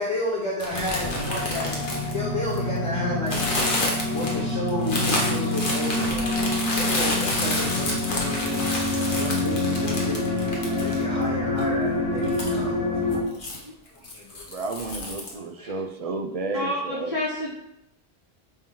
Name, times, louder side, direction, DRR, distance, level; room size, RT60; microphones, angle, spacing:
voice 1, 0.0-1.8 2.0-3.4 4.1-6.4 6.7-8.6 9.2-12.9 13.9-14.4 15.3-15.7, left 1 dB, 30° left, -5 dB, 1.1 m, -32 dB
sound 1, 0.6-2.8 3.3-11.2 11.6-11.7 12.2-12.6 13.1-13.6 14.0-15.3, left 1 dB, 50° left, 1.2 m, -29 dB
sound 2, 1.0-13.2, left 2 dB, 90° left, 1.5 m, -27 dB
sound 3, 1.2-13.1, left 1 dB, 85° right, 1.5 m, -46 dB
voice 2, 14.5-17.2, right 3 dB, 45° right, 5 dB, 0.5 m, -32 dB
voice 3, 16.5-17.5, left 1 dB, 70° left, -13 dB, 2.8 m, -28 dB
8.9 x 3.0 x 3.7 m, 0.82 s
omnidirectional pair, 1.1 m